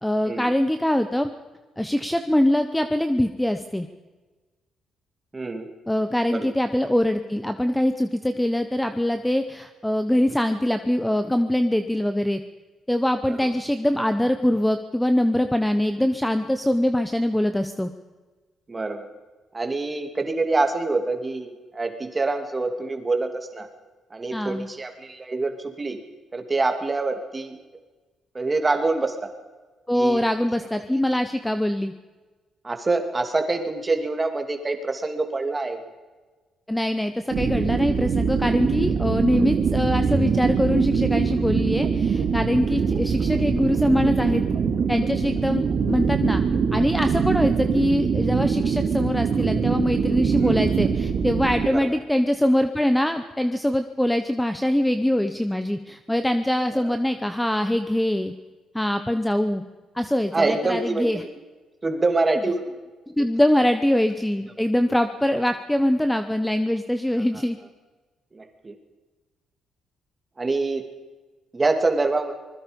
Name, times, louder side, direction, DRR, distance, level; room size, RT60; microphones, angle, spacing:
voice 1, 0.0-1.3 1.8-3.9 5.9-12.4 12.9-17.9 24.3-24.7 29.9-31.9 36.7-44.4 44.9-46.4 46.7-58.3 58.7-59.6 59.9-61.2 63.1-67.6, left 1 dB, 5° left, 8 dB, 1.0 m, -23 dB
voice 2, 5.3-5.7 6.3-6.5 13.3-13.5 18.7-19.1 19.5-23.7 24.1-26.0 26.3-27.6 28.3-29.3 29.9-30.2 32.6-35.9 40.0-40.2 50.4-50.6 51.7-52.0 56.7-57.0 60.3-61.3 61.8-62.7 67.3-67.4 68.3-68.7 70.4-70.8 71.5-72.3, right 3 dB, 20° right, 6 dB, 2.8 m, -26 dB
Underwater Ambience, 37.3-51.7, right 6 dB, 50° right, 2.3 m, -23 dB
25.0 x 21.0 x 5.4 m, 1.3 s
cardioid pair, 135°, 0 cm